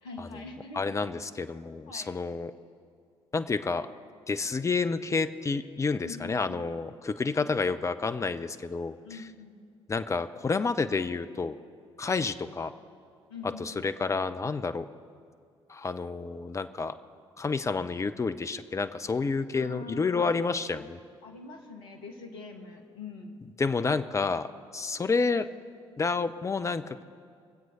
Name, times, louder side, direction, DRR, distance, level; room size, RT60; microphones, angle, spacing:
voice 1, 0.0-0.9 1.9-2.2 6.0-6.7 7.4-7.5 9.0-9.6 13.3-13.9 19.5-20.8 21.2-23.4, left 3 dB, 70° left, 3 dB, 1.3 m, -44 dB
voice 2, 0.7-2.5 3.3-3.9 4.3-9.0 9.9-11.6 12.0-12.7 13.6-14.9 15.7-16.9 17.4-21.0 23.6-24.5 24.7-25.5 26.0-27.0, left 4 dB, 20° left, 11 dB, 0.6 m, -29 dB
22.0 x 7.7 x 5.4 m, 2.2 s
figure-of-eight pair, 45°, 15 cm